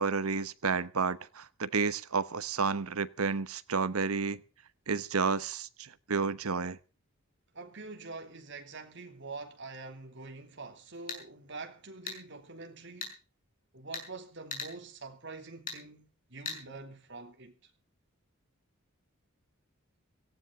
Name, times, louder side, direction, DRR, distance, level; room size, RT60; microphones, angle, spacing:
voice 1, 0.0-4.4 4.9-5.7 6.1-6.8, right 5 dB, 80° right, 1.0 m, -30 dB
voice 2, 7.5-13.1 13.7-17.5, right 3 dB, 55° right, 3.1 m, -45 dB
sound 1, 10.9-11.2 12.1-12.2 13.0-13.1 13.9-14.1 14.5-14.7 15.7-15.8 16.5-16.6, left 5 dB, 40° left, 6.1 m, -38 dB
18.0 x 16.0 x 3.9 m
head